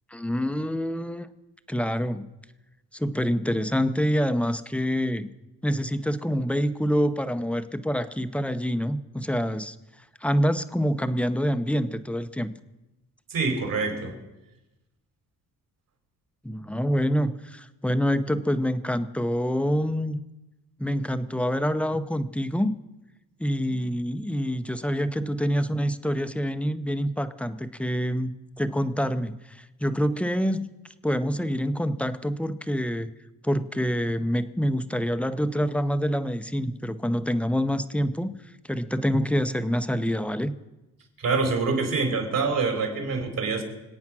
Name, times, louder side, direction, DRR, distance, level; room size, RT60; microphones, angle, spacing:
voice 1, 0.1-1.3 1.7-2.3 2.9-5.3 5.6-9.8 10.2-12.5 16.4-20.2 20.8-22.8 23.4-30.7 31.0-33.1 33.4-38.3 38.7-40.6, equal, 5° left, 0.8 m, -26 dB
voice 2, 13.3-14.1 41.2-43.6, right 4 dB, 60° right, 4.1 m, -25 dB
25.5 x 8.6 x 6.1 m
cardioid pair, 90°, 38 cm